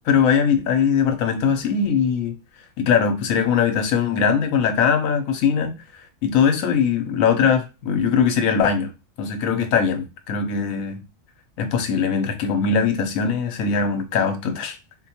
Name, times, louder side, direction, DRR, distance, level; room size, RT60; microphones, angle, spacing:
voice 1, 0.0-2.4 2.8-5.8 6.2-8.9 9.2-11.0 11.6-14.8, left 6 dB, 90° left, 1.0 m, -21 dB
4.0 x 2.2 x 2.8 m
omnidirectional pair, 1.4 m